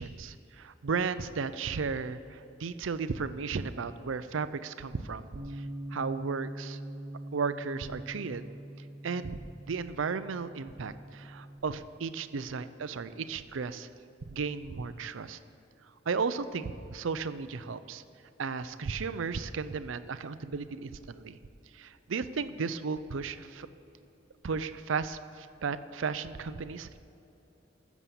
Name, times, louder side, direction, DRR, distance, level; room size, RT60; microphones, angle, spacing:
voice 1, 0.0-5.7 5.9-6.8 7.3-8.5 9.0-9.4 9.7-13.9 14.3-15.4 16.1-18.0 18.4-21.4 21.7-23.7 24.4-27.0, right 5 dB, 75° right, 13 dB, 0.5 m, -34 dB
Bass guitar, 5.4-11.6, right 1 dB, 55° right, 1.2 m, -43 dB
14.0 x 7.2 x 7.0 m, 2.9 s
head